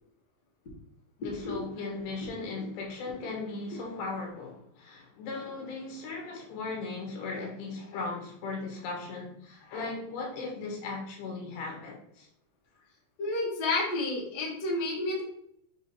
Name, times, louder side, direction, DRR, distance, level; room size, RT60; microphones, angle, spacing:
voice 1, 1.2-12.3, left 3 dB, 80° left, 0 dB, 3.5 m, -37 dB
voice 2, 13.2-15.2, left 2 dB, 55° left, -3 dB, 1.0 m, -30 dB
7.4 x 3.1 x 4.3 m, 0.70 s
omnidirectional pair, 4.8 m